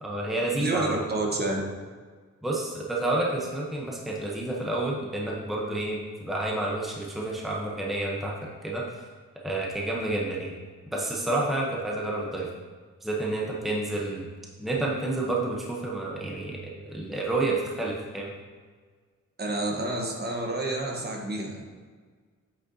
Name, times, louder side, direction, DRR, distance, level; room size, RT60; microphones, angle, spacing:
voice 1, 0.0-1.0 2.4-9.0 9.4-10.6 10.9-12.5 13.0-14.3 14.6-18.3, right 2 dB, ahead, -3 dB, 0.8 m, -29 dB
voice 2, 0.6-1.6 19.4-21.6, right 2 dB, 35° right, 0 dB, 1.0 m, -29 dB
8.2 x 6.3 x 2.7 m, 1.5 s
wide cardioid pair, 130°, 29 cm